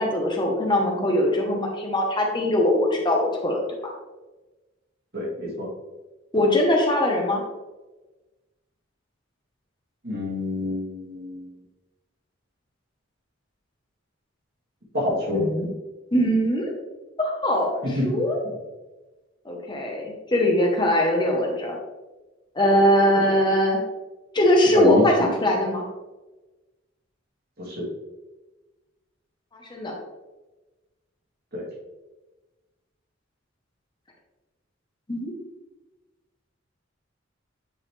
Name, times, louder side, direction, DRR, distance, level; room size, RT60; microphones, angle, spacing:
voice 1, 0.0-3.9 6.3-7.4 15.3-15.7 16.1-16.7 17.2-18.4 19.4-21.8 22.5-23.8 24.3-25.8 29.5-29.9 35.1-35.3, left 1 dB, 25° left, 0 dB, 1.0 m, -21 dB
voice 2, 5.1-5.7 10.0-11.5 14.9-15.4 18.0-18.1 23.1-23.3 24.7-25.3 27.6-27.9 31.5-31.6, left 1 dB, 50° right, -3 dB, 2.1 m, -27 dB
8.9 x 4.1 x 3.2 m, 1.1 s
head